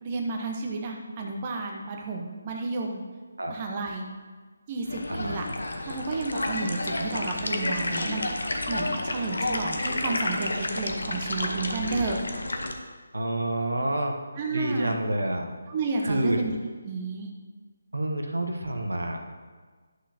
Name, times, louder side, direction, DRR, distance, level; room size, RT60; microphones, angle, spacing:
voice 1, 0.0-3.0 3.5-4.0 4.7-5.5 5.8-8.3 8.7-12.2 14.4-15.0 15.7-16.6 16.8-17.4, right 3 dB, 30° right, 1 dB, 0.9 m, -31 dB
sound 1, 4.9-12.7, left 2 dB, 75° left, 0.9 m, -30 dB
voice 2, 5.1-5.4 13.1-14.1 14.5-15.5 16.0-16.4 17.9-19.4, right 1 dB, 80° right, 4 dB, 1.0 m, -28 dB
11.5 x 6.3 x 2.8 m, 1.5 s
figure-of-eight pair, 155°, 0 cm